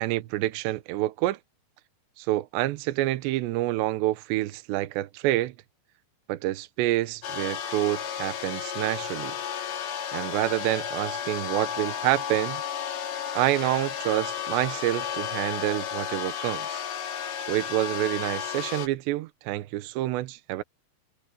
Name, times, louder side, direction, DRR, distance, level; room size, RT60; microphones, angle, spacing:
voice 1, 0.0-1.4 2.2-5.5 6.3-9.4 10.1-12.6 13.4-16.8 17.5-20.6, right 16 dB, 80° right, 3.0 m, -27 dB
sound 1, 7.2-18.9, left 9 dB, 65° left, 4.0 m, -33 dB
omnidirectional pair, 5.2 m